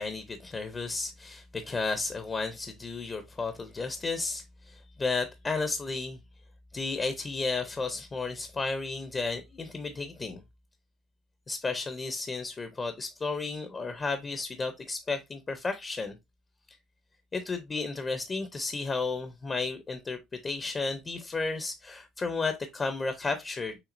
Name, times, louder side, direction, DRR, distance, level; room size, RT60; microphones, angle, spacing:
voice 1, 0.0-6.2 6.7-10.4 11.5-16.2 17.3-23.8, left 3 dB, 20° left, 0.5 m, -33 dB
5.8 x 3.5 x 2.5 m
cardioid pair, 165°, 0 cm